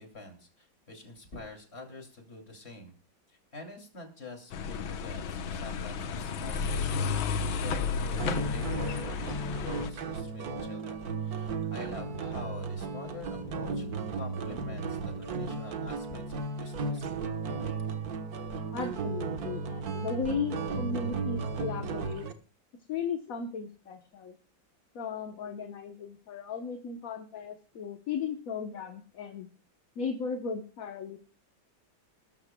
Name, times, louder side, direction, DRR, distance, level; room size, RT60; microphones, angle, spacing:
voice 1, 0.0-2.9 3.3-13.9 14.1-17.1, left 2 dB, 30° left, 3 dB, 2.8 m, -46 dB
sound 1, 4.5-9.9, left 5 dB, 85° left, 1.8 m, -32 dB
sound 2, 8.2-22.3, right 4 dB, 55° right, 1.6 m, -35 dB
voice 2, 18.7-22.3 22.9-24.4 24.9-29.5 30.0-31.2, left 5 dB, 50° left, 6 dB, 1.3 m, -36 dB
21.0 x 12.5 x 2.2 m, 0.37 s
omnidirectional pair, 2.1 m